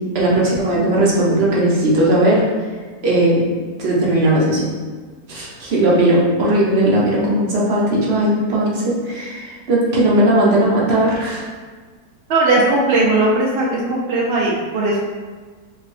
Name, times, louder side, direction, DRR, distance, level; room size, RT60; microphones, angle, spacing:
voice 1, 0.1-2.4 3.0-3.4 3.8-4.7 5.3-11.4, right 1 dB, 50° right, -5 dB, 0.8 m, -17 dB
voice 2, 12.3-15.0, right 2 dB, 85° right, -4 dB, 0.5 m, -17 dB
4.1 x 2.6 x 2.5 m, 1.5 s
omnidirectional pair, 1.7 m